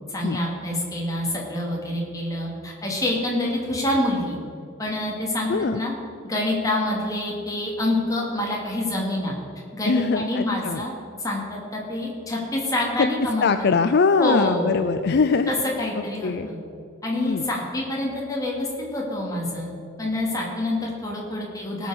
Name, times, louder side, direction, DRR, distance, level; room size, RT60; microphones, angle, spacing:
voice 1, 0.1-4.4 4.8-5.5 5.8-5.9 6.2-9.3 9.7-10.9 11.2-13.5 14.2-14.8 15.5-16.6 17.0-21.9, left 1 dB, 15° left, -3 dB, 2.6 m, -26 dB
voice 2, 5.5-5.8 9.9-10.9 13.0-15.5 15.9-16.5 17.2-17.5, left 4 dB, 50° left, 9 dB, 0.4 m, -22 dB
18.0 x 6.3 x 6.6 m, 2.6 s
head